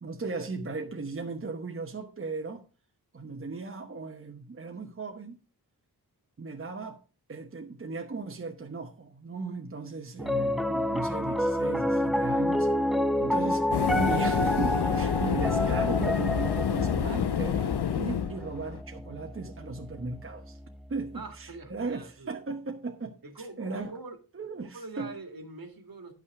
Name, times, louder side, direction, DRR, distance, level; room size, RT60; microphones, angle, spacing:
voice 1, 0.0-2.6 3.1-5.4 6.4-7.0 7.3-12.7 13.2-13.7 14.0-20.6 20.9-23.9 24.3-25.1, right 3 dB, 35° right, 1.0 m, -37 dB
Piano, 10.2-20.6, equal, ahead, 0.6 m, -29 dB
sound 1, 13.7-18.8, left 8 dB, 80° left, 0.6 m, -28 dB
voice 2, 21.1-22.3 23.2-24.2 24.6-26.1, right 3 dB, 60° right, 1.8 m, -43 dB
10.5 x 5.8 x 4.7 m
wide cardioid pair, 105°, 39 cm